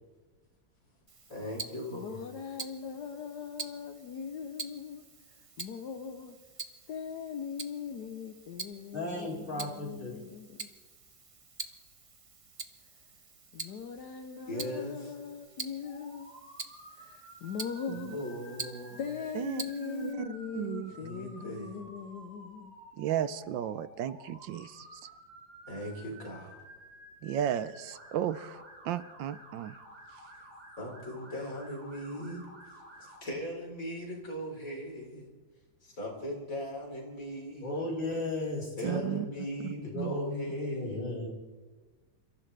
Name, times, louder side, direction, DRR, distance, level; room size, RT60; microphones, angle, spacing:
Tick-tock, 1.1-20.1, right 4 dB, 55° right, 0.3 m, -46 dB
voice 1, 1.3-2.2 14.4-15.1 18.1-19.1 21.0-21.9 25.7-26.6 30.8-32.4 32.7-35.3 35.8-37.9 38.8-41.1, equal, 45° left, 4.4 m, -39 dB
voice 2, 1.9-5.0 5.6-6.4 6.9-10.7 13.5-16.3 16.9-18.2 19.0-22.8, left 7 dB, 65° left, 1.4 m, -40 dB
voice 3, 8.9-10.2 37.6-41.3, left 2 dB, 25° left, 4.1 m, -35 dB
Motor vehicle (road) / Siren, 15.8-33.2, right 1 dB, 25° right, 6.1 m, -52 dB
voice 4, 19.3-20.9 23.0-25.0 27.2-29.7 38.8-39.3 39.6-40.2, right 10 dB, 80° right, 1.4 m, -35 dB
29.0 x 14.5 x 3.4 m
omnidirectional pair, 2.0 m